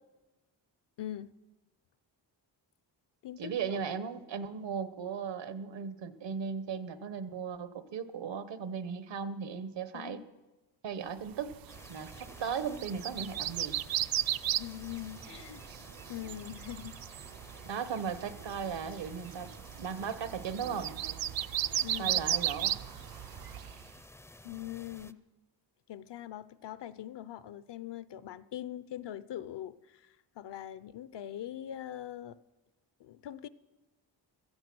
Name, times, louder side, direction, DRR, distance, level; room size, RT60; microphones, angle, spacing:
voice 1, 1.0-1.3 3.2-3.8 9.9-10.2 14.6-15.6 16.1-17.0 21.8-22.2 24.4-25.2 25.9-32.4 33.0-33.5, left 12 dB, 70° left, 16 dB, 0.7 m, -42 dB
voice 2, 3.4-10.2 10.8-11.6 11.9-13.8 17.6-19.5 19.8-20.9 22.0-22.8, right 6 dB, 75° right, 12 dB, 1.2 m, -37 dB
sound 1, 11.4-23.9, right 11 dB, 55° right, 0.5 m, -36 dB
sound 2, 11.7-25.1, left 1 dB, 5° left, 0.4 m, -53 dB
16.0 x 14.0 x 6.1 m, 1.1 s
wide cardioid pair, 115°, 43 cm